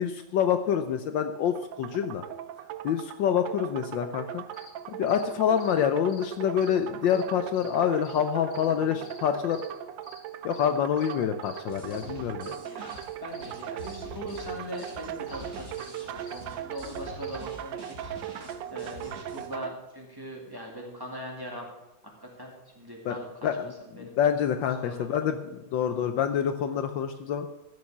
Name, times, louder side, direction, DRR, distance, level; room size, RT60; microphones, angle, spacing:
voice 1, 0.0-2.2 2.8-4.4 4.9-9.6 10.4-12.6 23.0-23.1 23.4-27.5, left 8 dB, 70° left, 8 dB, 1.3 m, -27 dB
sound 1, 1.5-19.8, right 10 dB, 75° right, 1.2 m, -39 dB
sound 2, 4.3-17.4, left 3 dB, 40° left, 2.2 m, -53 dB
sound 3, 11.7-19.5, equal, 40° right, 2.1 m, -46 dB
voice 2, 12.7-18.1 18.7-21.7 22.2-23.5 23.8-24.2 24.8-25.3, equal, 10° right, -1 dB, 2.2 m, -41 dB
14.0 x 6.4 x 7.2 m, 0.96 s
omnidirectional pair, 2.2 m